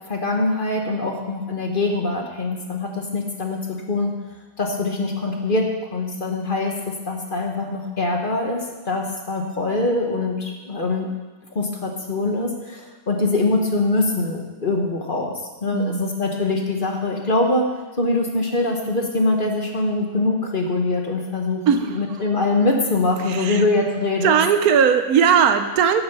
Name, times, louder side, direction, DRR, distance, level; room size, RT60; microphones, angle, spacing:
voice 1, 0.1-4.1 4.6-6.7 7.1-11.1 11.5-15.3 15.6-17.7 18.0-21.6 21.9-24.4, left 2 dB, 35° left, 2 dB, 1.3 m, -23 dB
voice 2, 15.7-16.2 21.7-22.2 23.2-23.6 24.2-26.0, right 7 dB, 80° right, 8 dB, 1.2 m, -19 dB
10.5 x 7.1 x 6.8 m, 1.2 s
omnidirectional pair, 1.6 m